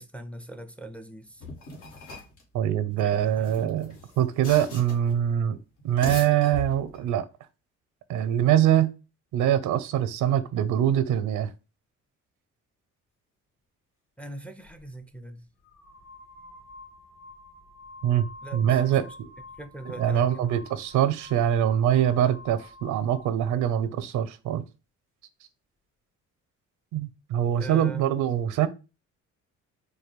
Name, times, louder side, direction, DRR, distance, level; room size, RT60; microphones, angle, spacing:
voice 1, 0.0-1.4 3.0-3.8 14.2-15.5 18.4-19.2 19.6-20.5 27.6-28.1, right 2 dB, 5° left, 0.5 m, -41 dB
sound 1, 1.4-2.4 3.3-5.1 5.8-7.1, left 3 dB, 80° left, 1.4 m, -39 dB
voice 2, 2.5-5.6 5.8-7.2 8.1-8.9 9.3-11.5 18.0-18.2 18.5-19.3 20.0-24.6 26.9-28.7, right 10 dB, 85° right, 0.6 m, -24 dB
sound 2, 14.7-14.8 15.6-23.4, left 2 dB, 40° left, 1.8 m, -48 dB
4.6 x 2.2 x 3.3 m
cardioid pair, 90°, 30 cm